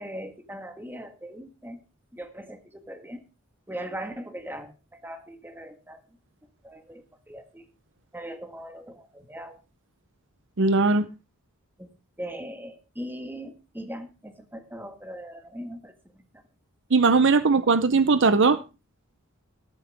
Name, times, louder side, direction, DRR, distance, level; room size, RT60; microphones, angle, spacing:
voice 1, 0.0-1.8 2.1-3.2 3.7-6.0 6.6-7.7 8.1-9.6 11.8-11.9 12.2-16.2, equal, 10° right, 6 dB, 1.7 m, -40 dB
voice 2, 10.6-11.1 16.9-18.6, right 4 dB, 60° right, 13 dB, 0.7 m, -19 dB
13.5 x 12.5 x 3.5 m, 0.30 s
head